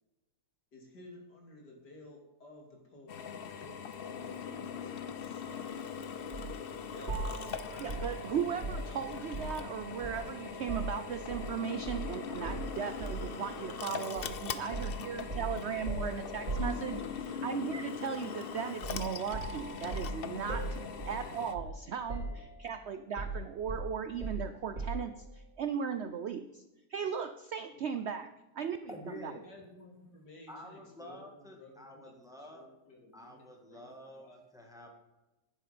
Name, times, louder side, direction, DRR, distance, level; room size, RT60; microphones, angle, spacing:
voice 1, 0.7-3.8 4.1-5.7 6.9-8.4 15.0-16.6 16.9-17.8 20.9-21.6 21.9-22.4 22.7-22.9 27.7-27.8 29.4-34.4, left 1 dB, 80° left, 0 dB, 3.4 m, -55 dB
Drill, 3.1-21.5, left 7 dB, 55° left, 0.6 m, -41 dB
sound 1, 6.3-6.5 7.1-9.7 10.0-11.5 11.9-12.1 12.4-13.3 14.2-14.4 14.7-17.3 18.8-19.1 19.3-21.8 22.1-22.7 23.2-25.1, right 2 dB, 40° right, 3.5 m, -39 dB
Wind instrument woodwind instrument, 6.9-15.2, right 5 dB, 85° right, 1.9 m, -51 dB
voice 2, 7.8-26.6 26.9-28.9 29.2-29.3, right 7 dB, 65° right, 10 dB, 0.6 m, -37 dB
voice 3, 28.9-29.4 30.5-32.7 33.1-34.9, left 1 dB, ahead, 1 dB, 1.9 m, -49 dB
11.5 x 10.0 x 5.2 m, 1.0 s
omnidirectional pair, 1.7 m